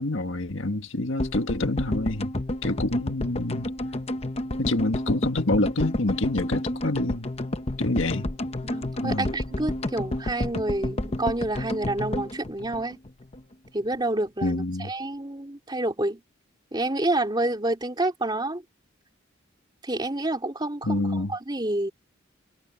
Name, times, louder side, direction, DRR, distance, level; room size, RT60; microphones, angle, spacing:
voice 1, 0.0-2.3 2.6-3.7 4.6-7.3 7.8-8.3 9.0-9.3 14.4-14.9 20.8-21.3, left 2 dB, 70° left, 1.7 m, -27 dB
sound 1, 1.2-13.4 13.7-13.8 13.9-14.0, left 1 dB, 30° left, 0.9 m, -30 dB
voice 2, 8.6-13.0 13.7-16.2 16.7-18.6 19.8-21.9, right 2 dB, 20° right, 3.0 m, -28 dB
head